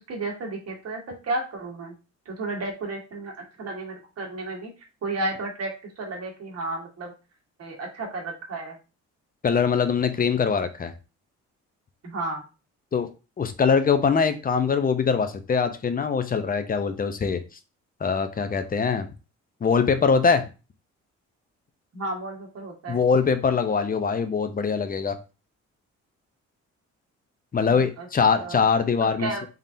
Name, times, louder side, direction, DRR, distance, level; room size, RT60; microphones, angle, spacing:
voice 1, 0.1-1.9 2.2-4.7 5.0-7.1 7.6-8.7 12.0-12.4 21.9-23.0 27.7-28.1 28.4-28.7 29.0-29.5, right 2 dB, 55° right, 0 dB, 1.6 m, -33 dB
voice 2, 9.4-10.9 12.9-13.1 13.4-17.4 18.0-19.1 19.6-20.4 22.9-25.2 27.5-29.3, left 5 dB, 30° left, 9 dB, 0.6 m, -22 dB
3.7 x 3.5 x 2.7 m, 0.31 s
cardioid pair, 90°, 30 cm